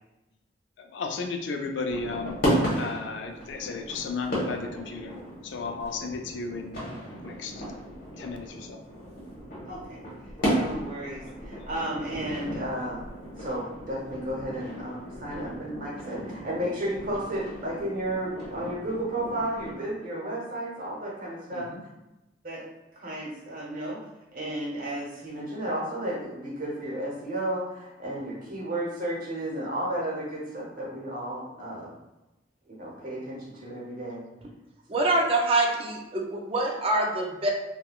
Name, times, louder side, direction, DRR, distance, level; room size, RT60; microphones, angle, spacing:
voice 1, 0.8-2.4 2.7-5.1 5.4-6.8 7.2-7.6 8.2-8.8 21.5-21.8, left 4 dB, 85° left, 4 dB, 0.4 m, -34 dB
sound 1, 1.9-19.7, equal, 55° left, 1.1 m, -34 dB
voice 2, 9.7-10.0 10.4-13.0 13.4-21.7 22.4-22.6 23.0-24.0 24.3-31.9 32.7-34.2 34.9-35.0, right 1 dB, 50° right, -4 dB, 0.8 m, -33 dB
voice 3, 34.9-37.5, right 2 dB, 30° right, 0 dB, 0.4 m, -25 dB
3.5 x 2.2 x 2.3 m, 0.99 s
head